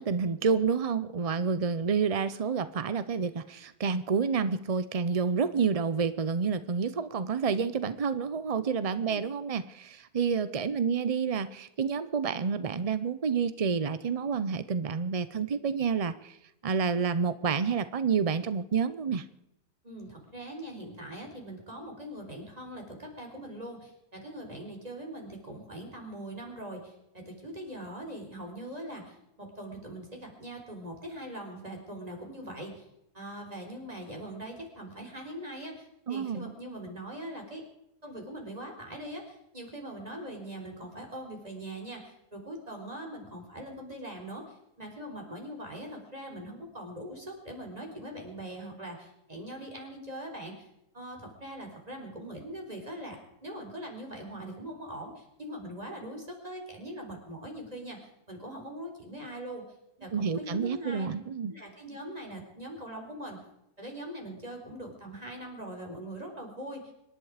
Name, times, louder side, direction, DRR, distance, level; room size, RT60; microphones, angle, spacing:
voice 1, 0.0-16.4 16.6-19.2 36.1-36.5 60.1-61.5, right 6 dB, 55° right, 14 dB, 0.4 m, -29 dB
voice 2, 19.8-32.9 33.1-37.6 38.0-44.4 44.8-50.7 50.9-59.6 60.0-61.1 61.5-63.4 63.8-66.9, right 1 dB, 25° right, 2 dB, 4.3 m, -42 dB
25.5 x 11.0 x 5.0 m, 0.83 s
omnidirectional pair, 1.6 m